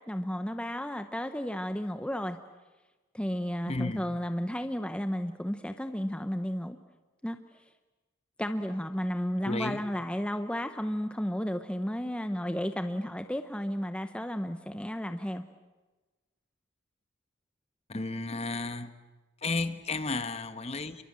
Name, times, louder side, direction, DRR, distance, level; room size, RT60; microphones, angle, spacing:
voice 1, 0.1-2.4 3.1-6.8 7.2-7.4 8.4-15.4, equal, 5° left, 0.8 m, -33 dB
voice 2, 3.7-4.0 9.4-9.8 17.9-18.9 19.4-21.0, left 3 dB, 30° left, 1.2 m, -33 dB
28.5 x 23.0 x 7.6 m
head